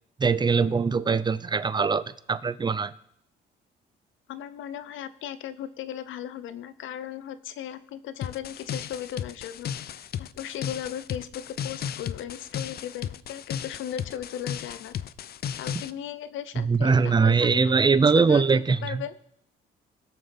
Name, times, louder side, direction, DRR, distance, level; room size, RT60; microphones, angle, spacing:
voice 1, 0.2-2.9 16.6-19.0, right 5 dB, 20° right, 16 dB, 0.5 m, -22 dB
voice 2, 4.3-9.7 10.2-15.0 15.6-19.1, left 10 dB, 80° left, 13 dB, 0.8 m, -37 dB
sound 1, 8.2-15.9, left 9 dB, 50° left, 0.5 m, -35 dB
20.0 x 6.7 x 4.1 m, 0.73 s
cardioid pair, 90°, 20 cm